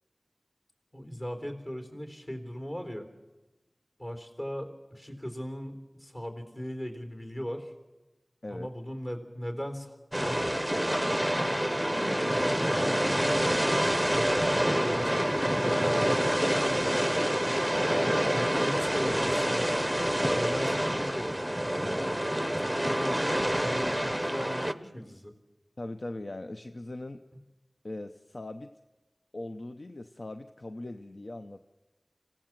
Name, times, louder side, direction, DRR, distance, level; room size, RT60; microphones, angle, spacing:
voice 1, 0.9-3.1 4.0-7.7 8.5-10.5 14.1-14.4 14.7-17.2 18.3-19.8 20.3-21.4 22.8-23.2 23.6-25.3, equal, 35° left, 6 dB, 3.6 m, -38 dB
sound 1, 10.1-24.7, equal, 5° right, 0.8 m, -27 dB
voice 2, 25.8-27.2 27.8-28.8 29.3-31.6, left 2 dB, 60° left, 8 dB, 0.7 m, -40 dB
25.5 x 16.5 x 7.4 m, 1.1 s
wide cardioid pair, 50°, 0 cm